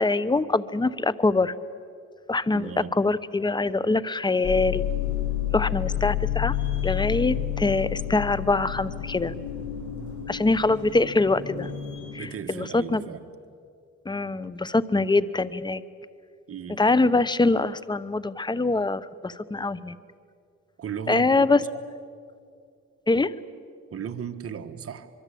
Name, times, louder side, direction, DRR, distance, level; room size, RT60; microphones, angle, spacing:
voice 1, 0.0-1.5 2.3-4.8 5.5-6.6 6.8-9.3 10.3-11.7 12.1-13.0 14.1-15.8 16.8-20.0 21.1-21.6 23.1-23.3, left 3 dB, 15° left, 17 dB, 0.9 m, -24 dB
voice 2, 2.5-2.9 12.2-13.2 16.5-16.8 20.8-21.5 23.9-25.1, right 7 dB, 50° right, 8 dB, 1.7 m, -36 dB
sound 1, 4.4-12.2, left 11 dB, 70° left, 5.1 m, -30 dB
24.5 x 23.0 x 8.6 m, 2.3 s
cardioid pair, 90°, 30 cm